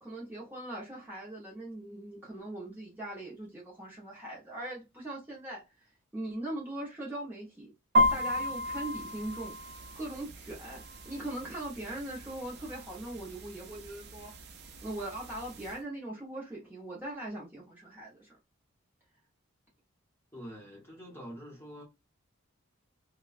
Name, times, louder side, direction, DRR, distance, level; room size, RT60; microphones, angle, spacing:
voice 1, 0.0-5.6 6.1-7.7 8.1-9.6 9.9-14.3 14.8-18.4, right 1 dB, 10° right, 0.8 m, -40 dB
sound 1, 7.9-15.8, left 1 dB, 50° right, 0.6 m, -34 dB
voice 2, 20.3-21.8, equal, 10° left, 0.9 m, -45 dB
2.9 x 2.2 x 2.4 m
head